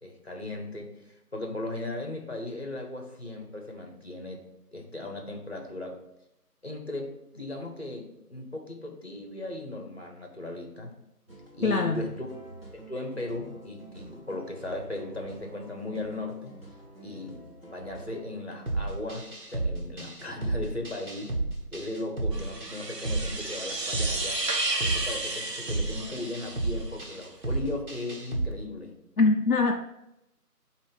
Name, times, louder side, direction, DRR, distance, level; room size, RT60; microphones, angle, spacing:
voice 1, 0.0-4.4 4.7-6.0 6.6-10.9 11.5-12.3 12.7-16.5 17.0-21.3 21.7-24.4 24.8-28.9, left 2 dB, 40° left, 2 dB, 1.1 m, -37 dB
sound 1, 11.3-18.3, right 2 dB, 40° right, 1.3 m, -48 dB
voice 2, 11.6-12.0 29.2-29.8, left 3 dB, 65° left, 3 dB, 0.5 m, -23 dB
sound 2, 18.7-28.5, right 2 dB, 60° right, 1.2 m, -33 dB
sound 3, 22.3-27.1, right 2 dB, 90° right, 1.0 m, -32 dB
6.7 x 2.7 x 5.5 m, 0.85 s
figure-of-eight pair, 175°, 47 cm